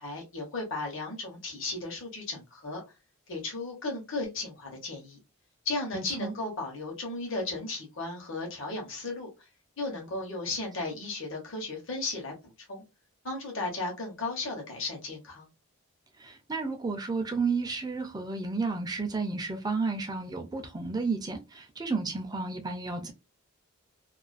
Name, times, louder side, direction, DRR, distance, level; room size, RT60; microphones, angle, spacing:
voice 1, 0.0-2.8 3.3-5.2 5.6-9.3 9.8-12.8 13.2-15.5, left 3 dB, 55° left, 0.9 m, -35 dB
voice 2, 5.9-6.3 16.2-23.1, right 4 dB, 15° right, 0.4 m, -32 dB
2.4 x 2.3 x 2.4 m
head